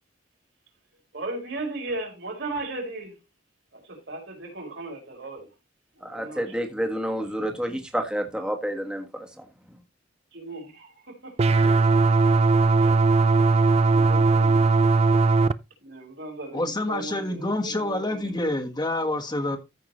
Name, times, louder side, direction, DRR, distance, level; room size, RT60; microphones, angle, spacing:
voice 1, 1.1-3.2 3.7-5.5 6.0-6.9 10.3-11.3 12.8-13.0 13.9-14.7 15.8-18.3, right 2 dB, 70° right, 4.8 m, -37 dB
voice 2, 6.0-9.4, equal, 5° right, 1.4 m, -29 dB
sound 1, 11.4-15.5, right 3 dB, 35° right, 0.4 m, -19 dB
voice 3, 16.5-19.6, left 1 dB, 20° left, 1.4 m, -27 dB
14.0 x 5.8 x 3.1 m
head